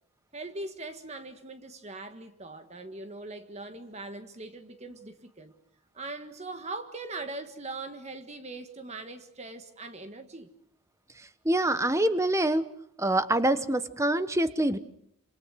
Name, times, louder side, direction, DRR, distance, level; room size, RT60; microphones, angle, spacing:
voice 1, 0.3-5.5 5.9-10.5, right 2 dB, 30° right, 1.6 m, -41 dB
voice 2, 11.4-12.7 13.0-14.8, right 1 dB, 15° right, 1.1 m, -25 dB
27.5 x 27.0 x 6.3 m
head